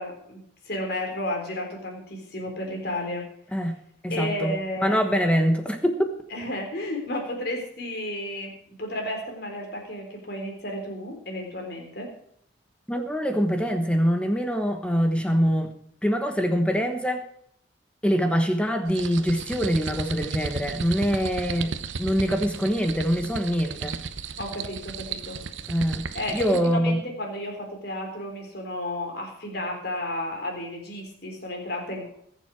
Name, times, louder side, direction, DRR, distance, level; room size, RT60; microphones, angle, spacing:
voice 1, 0.0-3.2 4.1-5.3 6.3-8.5 8.8-12.1 24.4-25.4 26.1-32.1, left 1 dB, 55° left, 1 dB, 3.8 m, -32 dB
voice 2, 4.0-6.1 12.9-15.7 16.0-17.2 18.0-24.0 25.7-27.0, equal, 5° left, 5 dB, 1.1 m, -24 dB
sound 1, 18.9-26.7, right 5 dB, 75° right, 0.8 m, -35 dB
21.0 x 7.4 x 4.7 m, 0.69 s
head